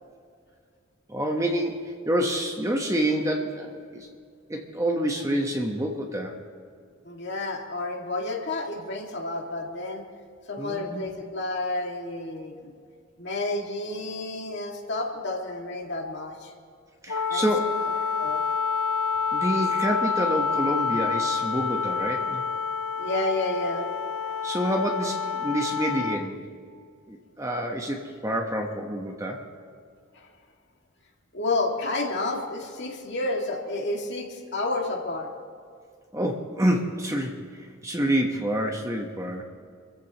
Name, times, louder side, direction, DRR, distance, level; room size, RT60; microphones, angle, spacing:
voice 1, 1.1-4.1 4.5-6.4 10.6-11.0 17.0-17.8 19.3-22.4 24.4-26.4 27.1-29.4 36.1-39.4, right 1 dB, 15° right, 2 dB, 1.2 m, -27 dB
voice 2, 7.0-10.0 10.5-12.7 13.2-16.5 17.3-17.5 18.2-18.4 23.0-23.8 30.1-30.3 31.3-35.3, left 2 dB, 55° left, 0 dB, 2.2 m, -30 dB
Wind instrument woodwind instrument, 17.1-26.3, left 5 dB, 85° left, 0.9 m, -28 dB
26.5 x 14.5 x 3.0 m, 2.2 s
head